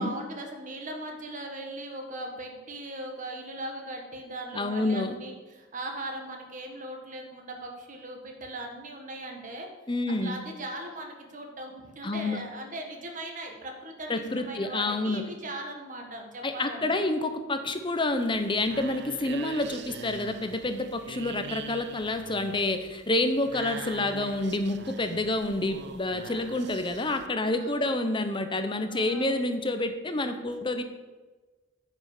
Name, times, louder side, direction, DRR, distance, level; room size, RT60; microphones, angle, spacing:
voice 1, 0.0-9.7 10.1-17.0 27.4-28.0 28.8-29.4, right 1 dB, 45° right, 2 dB, 1.7 m, -39 dB
voice 2, 4.5-5.2 9.9-10.4 12.0-12.4 14.1-15.2 16.4-30.8, left 2 dB, 25° left, 7 dB, 0.9 m, -28 dB
sound 1, 18.2-27.3, right 5 dB, 65° right, 0.6 m, -43 dB
9.5 x 6.3 x 7.2 m, 1.3 s
head